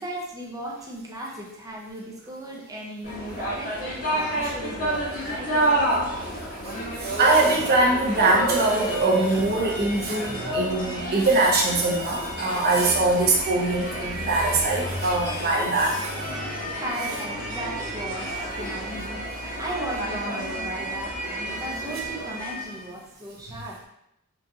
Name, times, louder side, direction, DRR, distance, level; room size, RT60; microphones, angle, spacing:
voice 1, 0.0-6.0 8.1-8.2 16.8-19.3 19.6-23.8, right 1 dB, 15° right, -2 dB, 0.5 m, -36 dB
sound 1, 3.0-22.9, right 1 dB, 40° left, 0.9 m, -30 dB
voice 2, 7.0-16.2, right 2 dB, 45° right, -3 dB, 0.7 m, -22 dB
3.9 x 2.4 x 2.7 m, 0.79 s
head